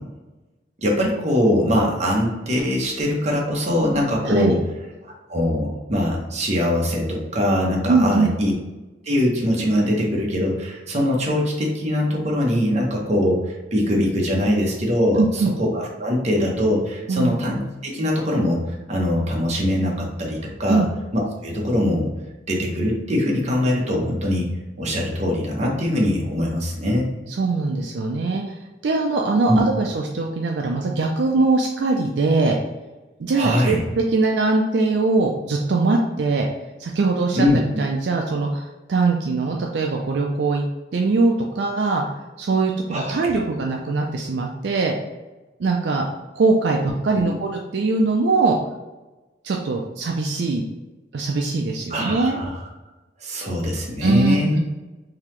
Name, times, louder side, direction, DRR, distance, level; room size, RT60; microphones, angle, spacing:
voice 1, 0.8-4.6 5.3-8.5 9.0-18.6 18.9-20.9 21.1-22.1 22.5-24.5 24.8-27.1 29.5-29.6 33.3-33.8 37.4-37.6 42.9-43.3 47.1-47.3 51.9-52.5 53.2-54.6, left 1 dB, 40° right, -1 dB, 0.9 m, -22 dB
voice 2, 7.9-8.3 15.2-15.5 17.1-17.3 20.7-20.9 27.3-32.6 33.2-36.5 36.8-37.5 37.8-40.6 40.9-42.0 42.4-44.9 45.6-46.0 46.3-48.6 49.4-50.7 51.1-52.4 54.0-54.6, right 3 dB, 70° right, 1 dB, 0.4 m, -21 dB
3.8 x 2.8 x 3.1 m, 1.1 s
head